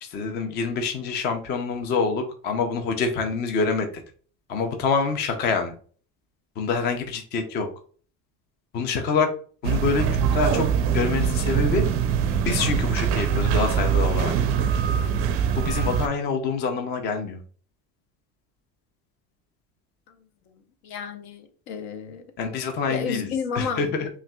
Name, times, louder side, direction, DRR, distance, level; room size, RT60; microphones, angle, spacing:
voice 1, 0.0-3.9 4.5-5.7 6.6-7.7 8.7-9.3 9.6-10.1 10.3-10.6 10.9-11.8 12.4-14.3 15.6-17.4 22.4-23.3 23.5-24.1, left 5 dB, 30° left, 0.4 m, -26 dB
sound 1, 9.6-16.1, right 7 dB, 40° right, 0.4 m, -23 dB
voice 2, 20.8-22.2 22.9-24.0, left 6 dB, 70° left, 0.8 m, -31 dB
5.6 x 2.4 x 2.2 m
cardioid pair, 160°, 37 cm